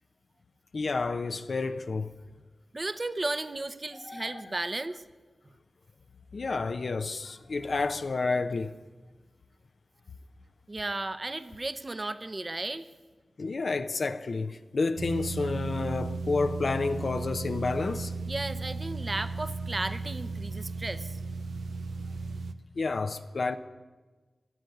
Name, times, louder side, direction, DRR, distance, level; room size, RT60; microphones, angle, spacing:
voice 1, 0.7-2.1 4.1-4.4 6.3-8.7 13.4-18.1 22.8-23.6, left 3 dB, 65° left, 0.8 m, -30 dB
voice 2, 2.7-5.0 10.7-12.9 18.3-21.2, right 2 dB, 35° right, 0.9 m, -34 dB
sound 1, 15.0-22.5, right 3 dB, 85° right, 0.6 m, -35 dB
15.5 x 10.0 x 9.4 m
cardioid pair, 55°, 0 cm